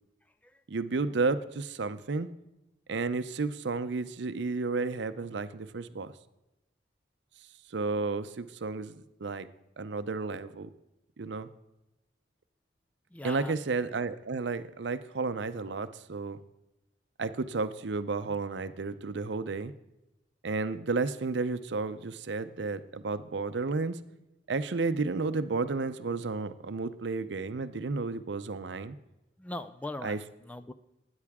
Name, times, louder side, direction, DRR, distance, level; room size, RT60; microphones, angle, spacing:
voice 1, 0.7-2.3 2.9-6.1 7.7-9.5 9.8-10.7 11.2-11.5 13.2-16.4 17.2-19.7 20.4-24.0 24.5-29.0 30.0-30.2, right 3 dB, 70° right, 12 dB, 0.6 m, -32 dB
voice 2, 13.1-13.5 29.4-30.7, left 2 dB, 10° left, 12 dB, 0.3 m, -40 dB
13.0 x 9.7 x 3.6 m, 0.93 s
head